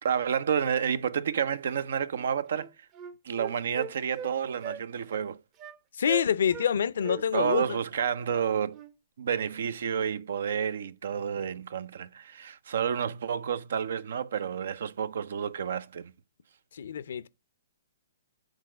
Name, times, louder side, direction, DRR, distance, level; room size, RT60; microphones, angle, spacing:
voice 1, 0.0-2.7 3.2-5.4 7.1-8.8 9.2-16.1, right 7 dB, 65° right, 0.6 m, -30 dB
Wind instrument woodwind instrument, 2.1-2.3 2.6-4.3 4.6-4.8 5.1-5.2 5.6-5.8 6.1-6.7 7.0-8.9, right 7 dB, 30° right, 0.7 m, -41 dB
voice 2, 6.0-7.6 16.7-17.3, left 8 dB, 70° left, 0.6 m, -26 dB
6.3 x 3.9 x 6.1 m
hypercardioid pair, 135°, 0 cm